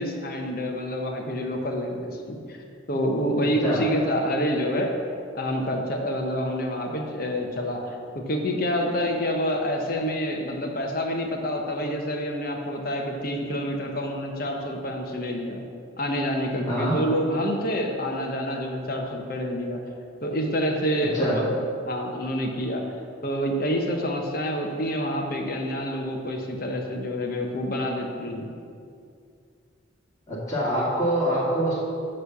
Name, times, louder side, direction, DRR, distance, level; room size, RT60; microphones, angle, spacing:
voice 1, 0.0-2.6 2.9-4.9 5.3-8.0 8.3-15.6 16.0-19.8 20.2-21.6 21.8-22.8 23.2-28.5, equal, 50° left, 2 dB, 1.0 m, -27 dB
voice 2, 30.3-31.8, equal, 15° left, -9 dB, 1.8 m, -25 dB
9.9 x 3.3 x 7.0 m, 2.4 s
head